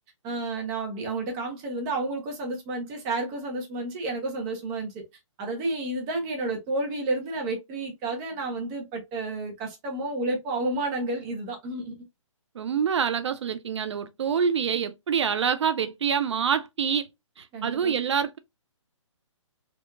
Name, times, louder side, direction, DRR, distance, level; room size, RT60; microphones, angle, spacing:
voice 1, 0.2-5.0 5.4-11.9 17.5-17.9, right 2 dB, 25° right, 1.1 m, -31 dB
voice 2, 12.6-17.1 17.4-18.4, right 7 dB, 60° right, 0.4 m, -26 dB
4.5 x 2.8 x 2.3 m
figure-of-eight pair, 140°, 17 cm